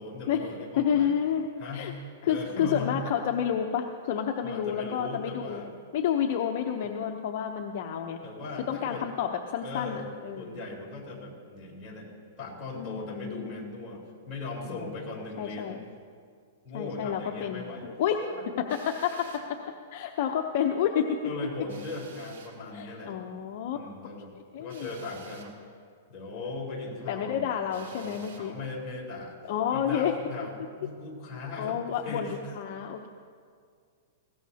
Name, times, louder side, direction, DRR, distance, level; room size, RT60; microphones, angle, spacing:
voice 1, 0.0-1.1 1.6-1.9 2.2-2.9 4.4-5.7 8.2-9.0 9.6-10.0 10.4-12.1 12.4-14.0 14.3-15.8 16.6-17.9 18.2-18.4 21.2-23.2 23.7-24.3 24.6-25.5 26.1-27.5 27.7-29.4 29.7-32.5, left 3 dB, 20° left, -6 dB, 3.8 m, -38 dB
voice 2, 0.8-1.9 2.2-5.6 5.9-8.2 8.7-10.6 12.7-13.6 14.7-14.9 15.4-15.8 16.7-18.2 18.6-19.3 19.9-21.2 22.7-23.8 24.5-24.9 26.3-26.5 27.1-28.5 29.5-30.1 31.6-33.1, left 8 dB, 50° left, 3 dB, 0.7 m, -30 dB
Drill, 18.7-19.5 21.7-22.6 24.7-25.6 27.7-28.5, right 6 dB, 80° right, 2.3 m, -51 dB
20.0 x 17.0 x 2.8 m, 2.2 s
hypercardioid pair, 160°, 0 cm